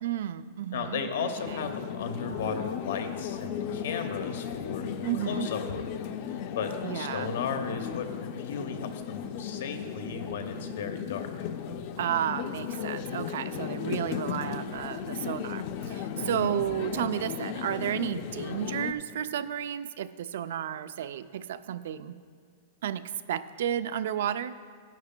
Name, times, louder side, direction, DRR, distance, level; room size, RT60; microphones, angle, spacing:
voice 1, 0.0-1.6 5.0-5.5 6.8-7.3 12.0-22.2 22.8-24.6, right 10 dB, 70° right, 13 dB, 0.3 m, -32 dB
voice 2, 0.7-4.9 5.3-5.9 6.5-11.3 16.2-16.5, left 5 dB, 80° left, 6 dB, 0.9 m, -35 dB
sound 1, 1.4-18.9, left 8 dB, 40° left, 0.4 m, -36 dB
13.5 x 10.5 x 2.2 m, 2.1 s
supercardioid pair, 175°, 0 cm